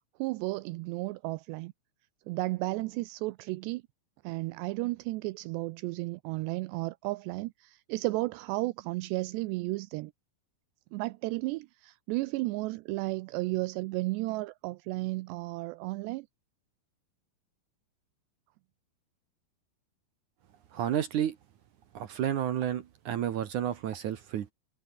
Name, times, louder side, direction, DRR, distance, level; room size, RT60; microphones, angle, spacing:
voice 1, 0.2-1.7 2.3-3.8 4.2-10.1 10.9-16.3, right 21 dB, 85° right, 2.7 m, -33 dB
voice 2, 20.7-21.4 21.9-24.5, right 10 dB, 65° right, 2.1 m, -31 dB
omnidirectional pair, 5.2 m